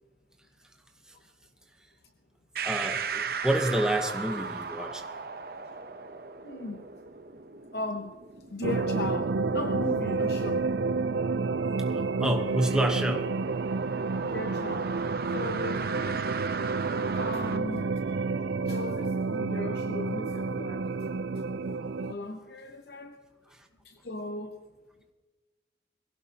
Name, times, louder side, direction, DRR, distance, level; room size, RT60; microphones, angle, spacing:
voice 1, 2.6-5.0 11.9-13.3 23.6-23.7, right 1 dB, 5° right, 3 dB, 1.0 m, -28 dB
sound 1, 2.6-17.6, right 5 dB, 55° right, 0.8 m, -38 dB
voice 2, 6.4-6.8 7.7-8.1 8.5-10.7 14.2-15.0 15.3-16.2 17.1-17.8 18.6-20.9 22.1-23.2 23.8-24.6, left 2 dB, 60° left, 6 dB, 0.8 m, -37 dB
sound 2, 8.6-22.1, right 4 dB, 85° right, 0.5 m, -30 dB
22.0 x 16.5 x 2.9 m, 1.2 s
head